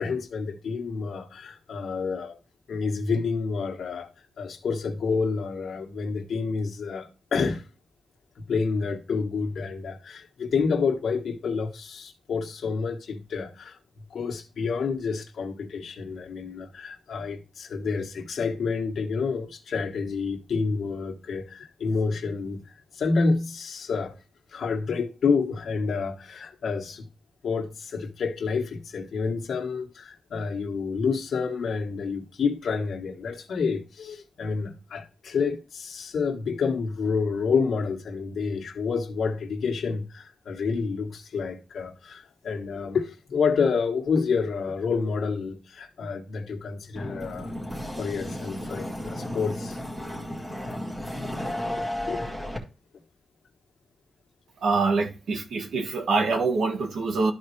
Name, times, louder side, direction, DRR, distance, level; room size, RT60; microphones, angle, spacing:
voice 1, 0.0-2.4 2.7-4.1 4.4-7.6 8.4-13.8 14.1-22.6 22.9-24.1 24.5-27.1 27.4-47.5 48.0-49.8 52.1-52.2, left 5 dB, 70° left, 1.3 m, -28 dB
sound 1, 47.0-52.6, left 1 dB, 10° right, 1.9 m, -33 dB
voice 2, 54.6-57.3, right 4 dB, 90° right, 1.5 m, -25 dB
12.5 x 4.2 x 3.2 m
wide cardioid pair, 155°, 0 cm